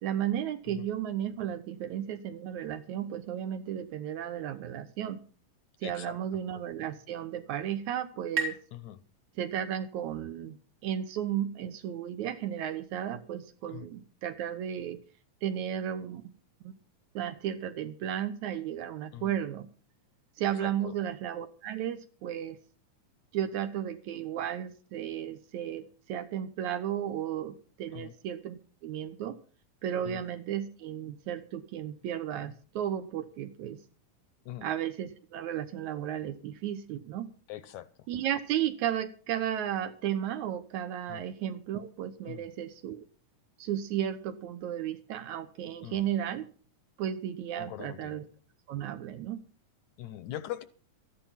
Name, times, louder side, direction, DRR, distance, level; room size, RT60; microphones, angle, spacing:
voice 1, 0.0-5.2 5.8-8.6 9.4-10.6 10.8-15.0 15.4-16.3 16.6-16.7 17.1-19.7 20.4-22.6 23.3-29.4 29.8-33.8 34.6-37.3 38.1-43.1 43.6-46.5 47.0-48.3 48.7-49.4, right 10 dB, 70° right, 11 dB, 2.2 m, -34 dB
voice 2, 5.8-6.2 8.7-9.0 13.7-13.9 19.1-19.3 20.6-20.9 27.9-28.1 30.0-30.2 34.5-34.7 37.5-37.9 41.1-41.2 42.3-42.4 45.8-46.1 47.6-48.2 50.0-50.6, left 13 dB, 75° left, 14 dB, 1.9 m, -42 dB
sound 1, 6.9-10.3, right 4 dB, 45° right, 3.7 m, -40 dB
14.0 x 11.0 x 5.8 m, 0.39 s
omnidirectional pair, 3.7 m